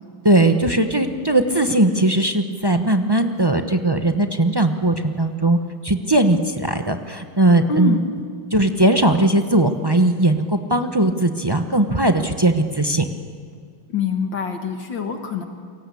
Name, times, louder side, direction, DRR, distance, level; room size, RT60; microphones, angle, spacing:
voice 1, 0.2-5.6 5.8-8.0 8.5-13.1, right 1 dB, 30° right, 6 dB, 0.4 m, -18 dB
voice 2, 7.7-8.1 13.9-15.4, left 5 dB, 60° left, 5 dB, 2.2 m, -25 dB
29.0 x 23.0 x 8.5 m, 2.1 s
omnidirectional pair, 2.3 m